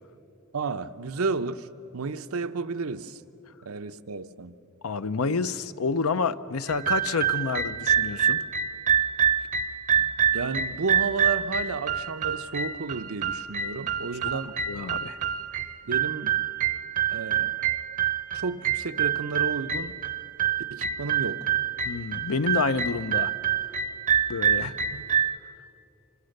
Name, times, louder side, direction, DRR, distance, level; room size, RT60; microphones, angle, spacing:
voice 1, 0.5-1.7 1.9-3.2 3.6-4.5 10.0-14.6 15.8-16.4 17.1-17.6 18.3-20.0 20.7-21.5 24.6-24.7, right 4 dB, 90° right, 0.8 m, -32 dB
voice 2, 4.8-8.4 14.7-15.2 21.8-23.3 24.3-24.8, left 4 dB, 85° left, 0.7 m, -28 dB
sound 1, 6.7-25.4, right 8 dB, 35° right, 0.6 m, -27 dB
26.5 x 26.0 x 6.6 m
head